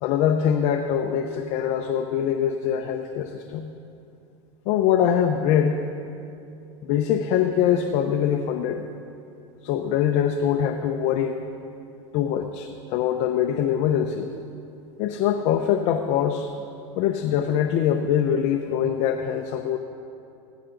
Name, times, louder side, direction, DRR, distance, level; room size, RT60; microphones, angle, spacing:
voice 1, 0.0-3.7 4.7-5.8 6.8-8.8 9.6-11.4 12.1-14.3 15.0-16.5 17.0-19.8, left 9 dB, 50° left, 5 dB, 0.7 m, -23 dB
16.5 x 14.0 x 3.8 m, 2.7 s
supercardioid pair, 150°, 15 cm